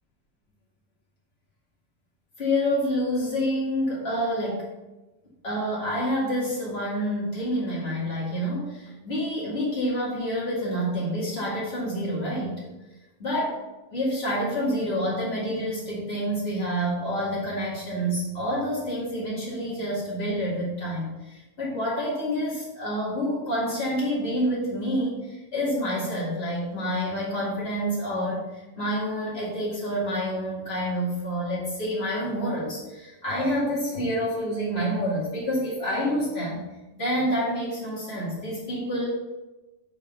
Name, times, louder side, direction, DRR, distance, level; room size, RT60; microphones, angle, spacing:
voice 1, 2.4-4.7 5.4-12.6 13.2-13.5 13.9-36.6 37.0-39.1, equal, 65° left, -7 dB, 2.6 m, -28 dB
8.2 x 4.0 x 5.4 m, 1.1 s
omnidirectional pair, 1.2 m